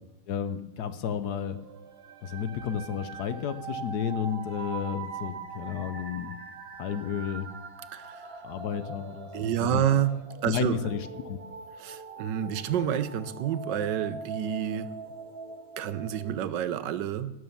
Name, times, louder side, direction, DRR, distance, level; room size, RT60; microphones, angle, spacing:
voice 1, 0.3-1.6 2.2-6.4 6.8-7.5 8.4-9.9 10.4-11.4, left 8 dB, 65° left, 11 dB, 1.2 m, -32 dB
sound 1, 1.2-16.4, right 5 dB, 50° right, 0.7 m, -42 dB
voice 2, 7.9-8.4 9.3-10.2 10.4-10.8 11.8-14.9 15.8-17.3, right 10 dB, 75° right, 13 dB, 1.3 m, -29 dB
17.0 x 6.4 x 7.1 m, 0.95 s
omnidirectional pair, 2.0 m